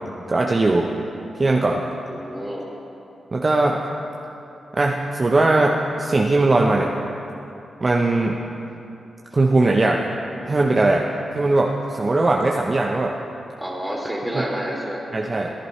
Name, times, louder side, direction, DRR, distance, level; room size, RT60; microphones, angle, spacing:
voice 1, 0.3-0.9 1.4-1.8 3.3-3.8 4.7-6.9 7.8-8.4 9.3-10.0 10.4-11.1 11.3-13.1 14.3-14.4 15.1-15.5, right 2 dB, 40° right, 0 dB, 0.8 m, -19 dB
voice 2, 2.1-2.6 13.6-15.0, equal, 5° right, -3 dB, 3.0 m, -29 dB
15.5 x 10.5 x 3.2 m, 2.7 s
supercardioid pair, 50°, 0 cm